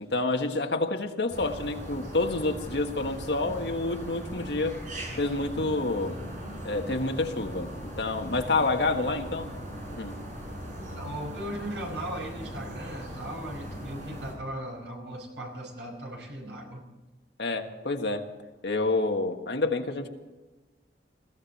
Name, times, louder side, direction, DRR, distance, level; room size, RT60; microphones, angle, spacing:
voice 1, 0.0-4.8 5.2-6.2 6.6-9.5 9.9-10.2 17.4-18.3 18.6-20.1, left 2 dB, 75° left, 5 dB, 1.6 m, -28 dB
sound 1, 1.3-14.3, equal, 45° right, 6.2 m, -39 dB
voice 2, 10.9-16.9, right 1 dB, 85° right, 1 dB, 5.0 m, -38 dB
21.0 x 15.5 x 4.3 m, 1.2 s
head